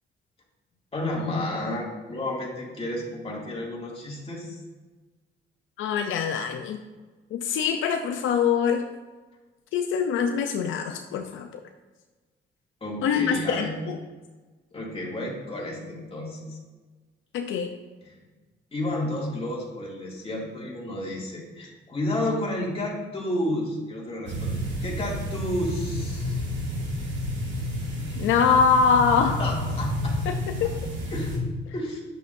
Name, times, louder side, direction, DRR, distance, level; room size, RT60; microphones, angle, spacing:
voice 1, 0.9-4.6 12.8-13.8 14.7-16.6 18.0-18.1 18.7-26.4 28.0-28.2 29.3-30.2 31.1-31.4 31.7-32.0, left 1 dB, 30° left, -3 dB, 2.4 m, -31 dB
voice 2, 5.8-6.8 7.3-8.9 9.7-11.5 13.0-14.0 17.3-17.7 28.2-29.4 30.3-30.4 30.6-30.7, left 6 dB, 85° left, 5 dB, 0.5 m, -23 dB
sound 1, 24.3-31.4, left 1 dB, 65° right, 2.1 m, -30 dB
9.1 x 6.8 x 2.6 m, 1.3 s
cardioid pair, 90°, 20 cm